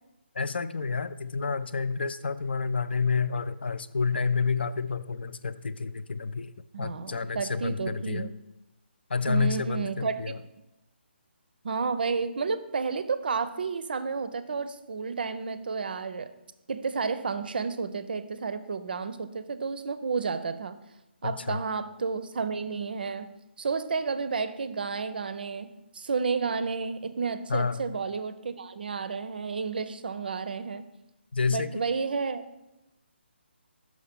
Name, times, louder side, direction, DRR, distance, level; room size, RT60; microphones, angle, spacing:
voice 1, 0.4-6.5 6.8-8.3 9.1-10.4 21.2-21.6 27.5-27.8 31.3-31.8, left 5 dB, 60° left, 13 dB, 0.4 m, -29 dB
voice 2, 6.7-8.3 9.3-10.3 11.6-16.3 16.7-20.8 21.2-23.3 23.6-30.9 31.5-32.4, right 5 dB, 55° right, 13 dB, 0.5 m, -31 dB
5.7 x 5.7 x 4.4 m, 0.95 s
figure-of-eight pair, 140°, 6 cm